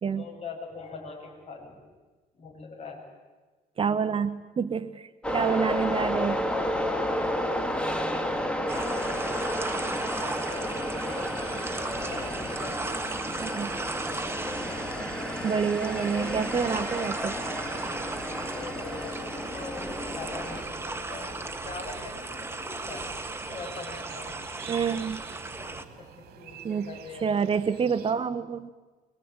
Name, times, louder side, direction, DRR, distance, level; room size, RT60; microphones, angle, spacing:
voice 1, 0.2-1.8 2.3-3.0 7.3-11.3 11.9-13.2 18.4-23.0 23.4-24.4 25.6-27.3, left 3 dB, 40° left, 1 dB, 7.3 m, -43 dB
voice 2, 3.8-6.4 13.4-13.7 15.0-15.1 15.4-17.3 24.7-25.2 26.6-26.9 27.2-28.7, right 6 dB, 35° right, 12 dB, 0.9 m, -28 dB
sound 1, 5.2-20.6, left 1 dB, 5° left, 2.4 m, -32 dB
sound 2, 8.7-25.8, right 2 dB, 15° right, 1.8 m, -36 dB
sound 3, 11.2-28.1, right 8 dB, 65° right, 2.8 m, -49 dB
23.5 x 23.5 x 8.8 m, 1.3 s
cardioid pair, 110°, 17 cm